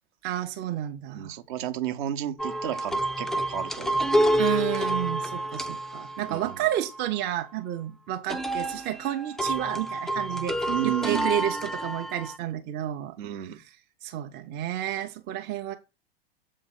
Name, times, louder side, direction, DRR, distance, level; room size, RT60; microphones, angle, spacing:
voice 1, 0.2-1.3 4.4-13.8 14.0-15.8, right 12 dB, 35° right, 0.8 m, -31 dB
voice 2, 1.1-4.0 6.3-6.6 10.7-11.3 13.2-13.6, right 12 dB, 55° right, 1.1 m, -32 dB
sound 1, 2.4-7.0 8.3-12.4, right 1 dB, ahead, 0.5 m, -28 dB
7.5 x 3.8 x 6.7 m
figure-of-eight pair, 90°, 30 cm